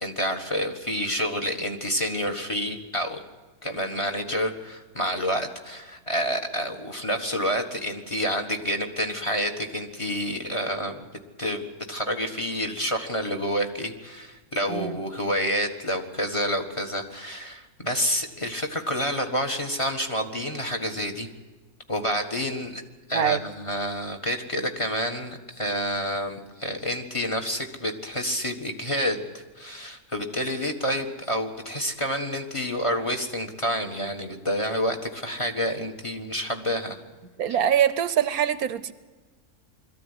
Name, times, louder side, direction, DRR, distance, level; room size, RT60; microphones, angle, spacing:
voice 1, 0.0-3.2 3.6-11.1 11.4-11.6 11.9-21.3 21.9-22.8 23.1-37.0, equal, 20° left, 5 dB, 1.6 m, -28 dB
voice 2, 14.7-15.0 23.1-23.4 37.4-38.9, right 9 dB, 80° right, 15 dB, 1.3 m, -23 dB
22.0 x 14.0 x 9.7 m, 1.3 s
omnidirectional pair, 1.6 m